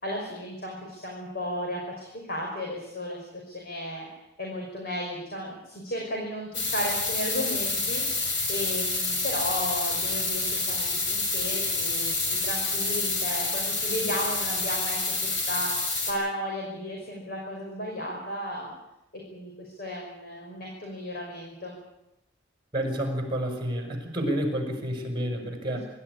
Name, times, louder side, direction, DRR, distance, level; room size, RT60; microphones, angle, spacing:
voice 1, 0.0-3.3 3.5-4.0 4.4-15.0 15.2-15.7 16.1-18.7 19.3-21.8, left 1 dB, 55° left, -1 dB, 5.7 m, -34 dB
sound 1, 6.5-16.1, left 3 dB, 75° left, 6.4 m, -28 dB
voice 2, 22.7-25.9, equal, 25° right, 3 dB, 6.3 m, -29 dB
25.0 x 13.5 x 9.9 m, 0.91 s
head